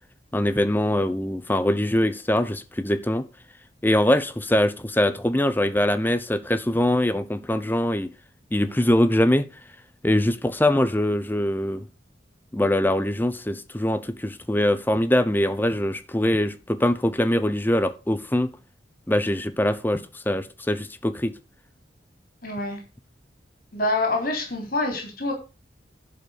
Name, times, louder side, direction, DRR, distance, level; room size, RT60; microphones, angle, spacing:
voice 1, 0.3-3.3 3.8-8.1 8.5-9.4 10.0-11.9 12.5-18.5 19.1-21.3, left 1 dB, 10° left, 0.7 m, -23 dB
voice 2, 22.4-22.8 23.7-25.3, left 2 dB, 50° left, 3.8 m, -26 dB
11.0 x 5.4 x 6.5 m
head